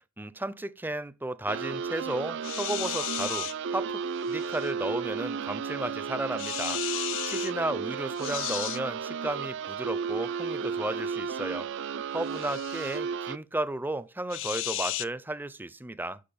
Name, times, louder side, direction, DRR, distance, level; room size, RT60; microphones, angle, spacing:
voice 1, 0.0-11.7 12.1-16.2, right 1 dB, 10° right, 0.5 m, -34 dB
sound 1, 1.5-13.4, right 6 dB, 55° right, 0.4 m, -33 dB
sound 2, 2.4-3.5 4.3-4.7 6.4-7.5 8.2-8.8 12.3-13.0 14.3-15.0, left 15 dB, 60° left, 0.5 m, -34 dB
8.6 x 6.1 x 7.0 m
head